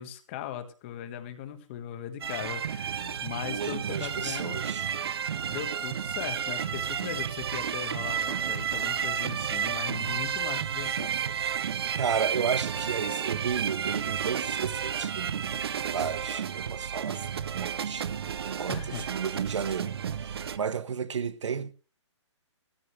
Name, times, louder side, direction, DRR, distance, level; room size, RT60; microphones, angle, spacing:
voice 1, 0.0-4.7 5.5-11.1 18.7-19.1, left 10 dB, 25° left, 1.4 m, -39 dB
sound 1, 2.2-20.6, right 8 dB, 55° right, 0.8 m, -32 dB
voice 2, 3.5-4.9 12.0-15.6 15.9-21.7, right 7 dB, 75° right, 1.0 m, -33 dB
15.0 x 14.5 x 3.2 m
hypercardioid pair, 170°, 16 cm